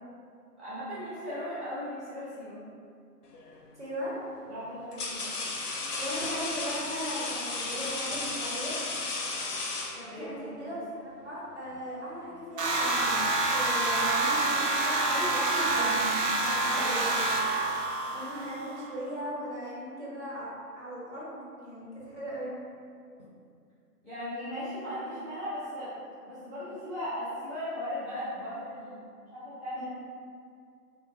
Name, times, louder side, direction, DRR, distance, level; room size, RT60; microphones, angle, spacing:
voice 1, 0.6-2.6 4.5-5.3 9.9-10.7 15.0-16.8 24.0-25.9 26.3-29.0 29.3-29.9, equal, ahead, -16 dB, 0.5 m, -37 dB
sound 1, 3.3-3.7 4.5-10.4, left 3 dB, 75° left, 0.6 m, -34 dB
voice 2, 3.8-4.1 5.9-8.7 10.2-13.3 13.5-15.6 15.8-16.1 16.7-17.3 18.0-20.5 20.8-22.6 29.7-29.9, equal, 45° right, -7 dB, 0.6 m, -38 dB
sound 2, 12.6-18.7, right 2 dB, 90° right, 0.6 m, -27 dB
2.7 x 2.1 x 2.5 m, 2.3 s
figure-of-eight pair, 165°, 48 cm